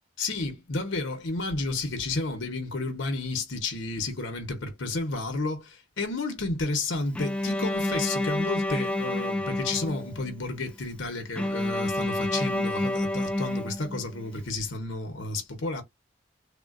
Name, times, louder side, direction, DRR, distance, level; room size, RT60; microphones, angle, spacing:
voice 1, 0.2-15.8, left 3 dB, 90° left, 0.9 m, -31 dB
Bowed string instrument, 7.2-10.4 11.4-14.3, left 1 dB, 5° left, 0.3 m, -29 dB
3.6 x 2.2 x 2.4 m
head